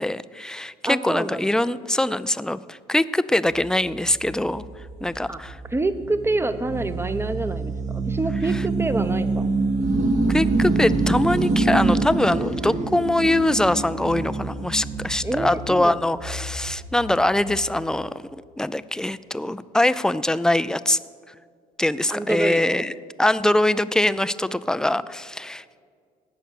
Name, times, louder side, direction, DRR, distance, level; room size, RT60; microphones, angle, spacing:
voice 1, 0.0-4.6 5.0-5.6 10.3-18.2 18.6-21.0 21.3-21.4 21.8-22.9 23.2-25.8, left 1 dB, 5° left, 15 dB, 0.5 m, -23 dB
voice 2, 0.9-1.5 5.3-5.4 5.7-9.6 15.2-16.0 22.1-22.9, right 2 dB, 15° right, 12 dB, 0.9 m, -27 dB
sound 1, 3.5-17.7, right 3 dB, 45° right, 1.3 m, -26 dB
17.5 x 6.5 x 6.6 m, 2.1 s
hypercardioid pair, 60°, 18 cm